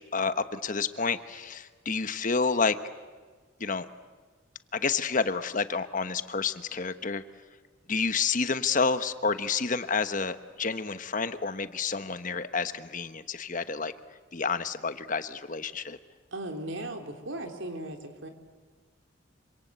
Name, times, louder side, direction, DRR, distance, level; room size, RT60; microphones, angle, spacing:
voice 1, 0.0-2.7 3.6-3.9 4.7-7.2 7.9-13.9 14.3-16.0, left 4 dB, 45° left, 11 dB, 1.2 m, -29 dB
voice 2, 16.3-18.3, right 1 dB, 90° right, 4 dB, 3.8 m, -37 dB
27.5 x 26.0 x 8.2 m, 1.4 s
head